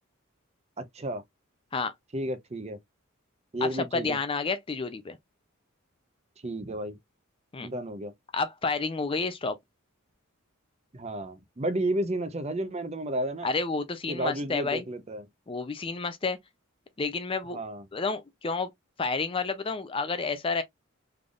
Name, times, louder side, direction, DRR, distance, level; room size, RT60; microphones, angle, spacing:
voice 1, 0.8-1.2 2.1-2.8 3.5-4.2 6.4-7.0 7.6-8.1 10.9-13.5 14.1-15.2 17.5-17.8, right 1 dB, 30° right, 0.6 m, -32 dB
voice 2, 3.6-5.2 7.5-7.7 8.3-9.6 13.4-14.8 15.5-16.4 17.0-17.6 17.9-18.7 19.0-20.6, left 4 dB, 25° left, 0.4 m, -30 dB
3.8 x 3.4 x 2.3 m
head